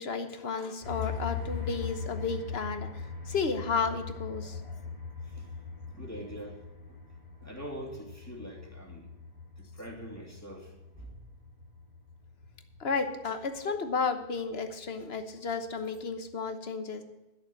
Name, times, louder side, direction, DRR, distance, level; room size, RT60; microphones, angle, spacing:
voice 1, 0.0-4.8 12.8-17.0, left 5 dB, 70° left, 8 dB, 1.3 m, -33 dB
sound 1, 0.8-16.3, left 5 dB, 40° left, 2.6 m, -41 dB
voice 2, 5.9-6.6 6.9-7.0 7.4-9.1 9.6-11.2, right 1 dB, 15° left, -1 dB, 2.7 m, -43 dB
12.0 x 6.7 x 7.6 m, 1.1 s
omnidirectional pair, 1.1 m